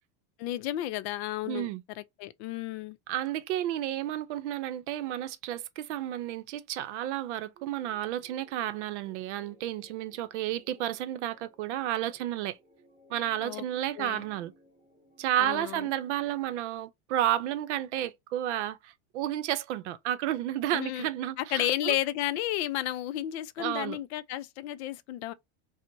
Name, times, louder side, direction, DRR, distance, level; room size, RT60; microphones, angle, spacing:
voice 1, 0.4-1.7 2.0-3.0 13.4-13.6 14.0-14.2 15.4-15.9 20.7-21.1 21.4-25.3, left 13 dB, 65° left, 0.5 m, -32 dB
voice 2, 1.5-1.8 3.1-12.6 13.1-14.5 15.2-22.0 23.6-24.0, right 12 dB, 80° right, 0.6 m, -32 dB
sound 1, 7.5-16.5, equal, 15° right, 0.8 m, -58 dB
4.4 x 2.1 x 2.6 m
supercardioid pair, 155°, 34 cm